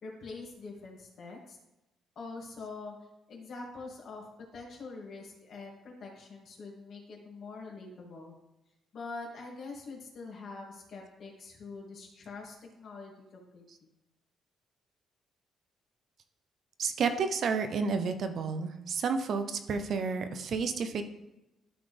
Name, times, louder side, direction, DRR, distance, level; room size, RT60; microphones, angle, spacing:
voice 1, 0.0-1.6 2.2-2.9 3.3-4.2 4.5-8.3 8.9-13.6, left 3 dB, 60° left, -1 dB, 2.4 m, -44 dB
voice 2, 16.8-21.0, right 5 dB, 60° right, 8 dB, 0.8 m, -31 dB
12.0 x 4.0 x 3.4 m, 0.95 s
cardioid pair, 90°, 0 cm